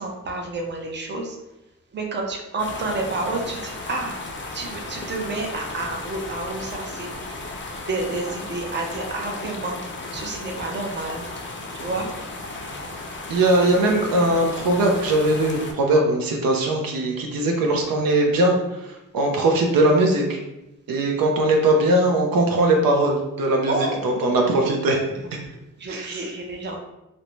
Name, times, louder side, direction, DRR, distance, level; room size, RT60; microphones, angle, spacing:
voice 1, 0.0-1.4 1.9-4.2 4.5-7.4 7.9-11.2 11.7-12.1 23.7-24.5 25.2-26.8, right 2 dB, 30° right, 1 dB, 0.5 m, -30 dB
sound 1, 2.6-15.7, left 2 dB, 35° left, 0.4 m, -35 dB
voice 2, 13.3-18.6 18.8-20.4 20.9-23.7 24.0-25.0 25.9-26.3, right 1 dB, 80° right, 1 dB, 0.5 m, -20 dB
2.5 x 2.1 x 3.0 m, 0.94 s
cardioid pair, 75°, 34 cm